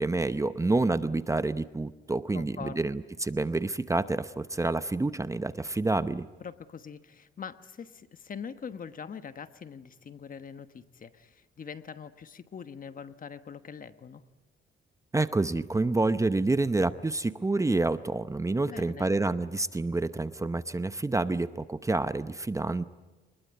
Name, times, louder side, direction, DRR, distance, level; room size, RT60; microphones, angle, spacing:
voice 1, 0.0-6.3 15.1-22.8, right 2 dB, 15° right, 12 dB, 0.8 m, -28 dB
voice 2, 2.3-2.8 6.4-14.2 18.6-19.1, left 6 dB, 45° left, 10 dB, 1.3 m, -43 dB
25.0 x 21.0 x 9.4 m, 1.2 s
cardioid pair, 90°, 20 cm